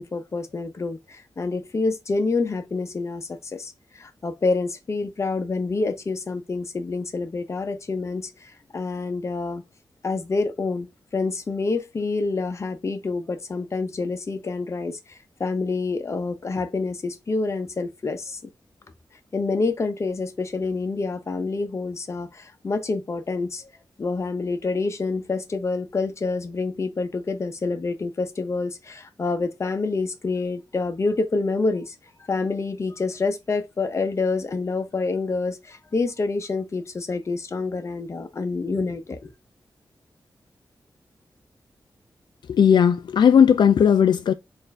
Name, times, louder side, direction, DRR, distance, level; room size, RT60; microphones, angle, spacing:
voice 1, 0.0-9.6 10.0-10.9 11.1-18.4 19.3-23.7 24.0-31.9 32.3-39.3, left 3 dB, 40° left, 0.7 m, -27 dB
voice 2, 42.6-44.3, left 7 dB, 75° left, 0.3 m, -16 dB
4.2 x 2.6 x 3.4 m
wide cardioid pair, 125°, 8 cm